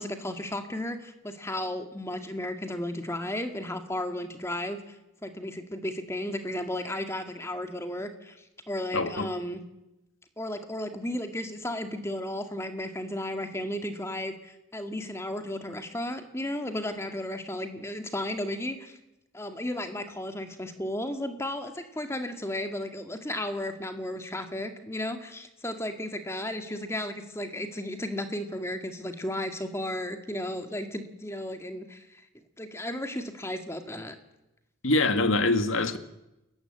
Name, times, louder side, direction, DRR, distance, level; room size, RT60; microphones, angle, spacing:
voice 1, 0.0-5.0 5.2-9.6 10.4-19.0 19.3-32.2 32.6-34.2, left 1 dB, 15° left, 1.9 m, -34 dB
voice 2, 8.9-9.3 34.8-36.0, left 2 dB, 75° left, 1.8 m, -24 dB
29.0 x 15.0 x 8.8 m
head